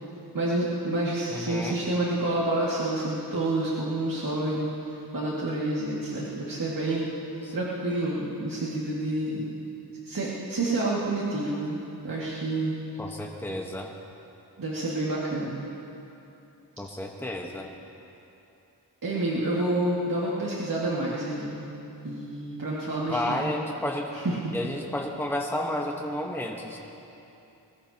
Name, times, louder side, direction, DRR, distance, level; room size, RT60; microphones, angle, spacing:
voice 1, 0.3-4.7 5.1-7.1 7.5-9.4 10.1-12.7 14.6-15.6 19.0-21.6 22.0-23.5 24.1-24.5, right 2 dB, 55° right, -7 dB, 2.2 m, -28 dB
voice 2, 1.3-1.8 7.4-7.5 13.0-13.9 16.8-17.7 23.1-24.1 24.5-26.8, left 1 dB, 5° left, 0 dB, 1.2 m, -31 dB
22.0 x 20.0 x 2.9 m, 2.8 s
wide cardioid pair, 75°, 40 cm